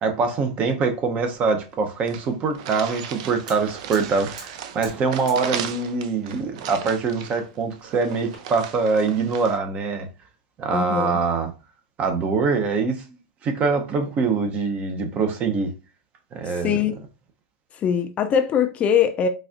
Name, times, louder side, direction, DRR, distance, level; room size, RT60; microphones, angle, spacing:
voice 1, 0.0-10.1 10.6-11.5 12.0-13.0 13.4-15.7 16.3-16.8, right 4 dB, 35° right, 0.7 m, -24 dB
sound 1, 1.4-1.5 1.7-1.8 2.1-9.6, right 9 dB, 60° right, 0.5 m, -36 dB
Fire, 2.9-8.4, right 3 dB, 80° right, 1.7 m, -47 dB
voice 2, 10.7-11.2 16.5-17.0 17.7-19.3, left 8 dB, 30° left, 0.4 m, -22 dB
4.1 x 2.3 x 2.5 m
hypercardioid pair, 105°, 4 cm